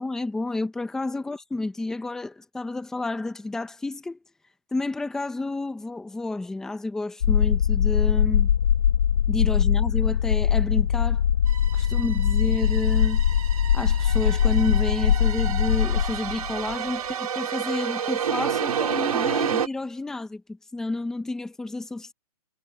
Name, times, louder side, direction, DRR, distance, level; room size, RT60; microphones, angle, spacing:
voice 1, 0.0-4.2 4.7-8.5 9.3-11.2 11.7-13.2 13.7-20.4 20.7-22.1, left 2 dB, 5° left, 1.2 m, -30 dB
sound 1, 7.2-16.7, left 9 dB, 70° left, 1.8 m, -22 dB
sound 2, 11.5-19.7, right 8 dB, 70° right, 4.5 m, -30 dB
hypercardioid pair, 170°, 20 cm